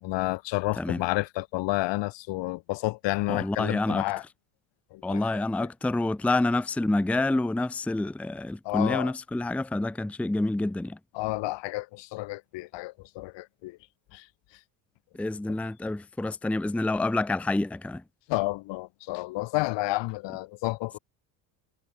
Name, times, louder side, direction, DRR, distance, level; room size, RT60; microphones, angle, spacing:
voice 1, 0.0-4.2 4.9-5.7 8.6-9.1 11.1-13.8 14.1-14.3 18.3-21.0, left 20 dB, 65° left, 1.5 m, -30 dB
voice 2, 3.3-4.0 5.0-11.0 15.1-18.0, left 2 dB, 5° left, 0.6 m, -28 dB
supercardioid pair, 100°, 47 cm